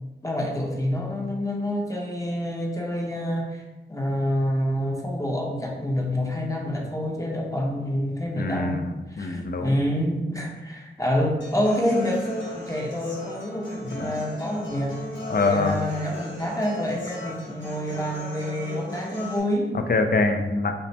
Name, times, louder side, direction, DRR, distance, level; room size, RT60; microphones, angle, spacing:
voice 1, 0.2-3.6 3.9-8.8 9.1-15.0 15.3-19.7, equal, 15° left, -1 dB, 0.8 m, -27 dB
voice 2, 8.4-9.7 15.3-15.8 19.9-20.8, left 3 dB, 50° left, 6 dB, 0.5 m, -24 dB
Human voice / Acoustic guitar, 11.4-19.4, left 1 dB, 70° left, 1.1 m, -38 dB
5.3 x 2.0 x 3.3 m, 1.1 s
wide cardioid pair, 60°, 20 cm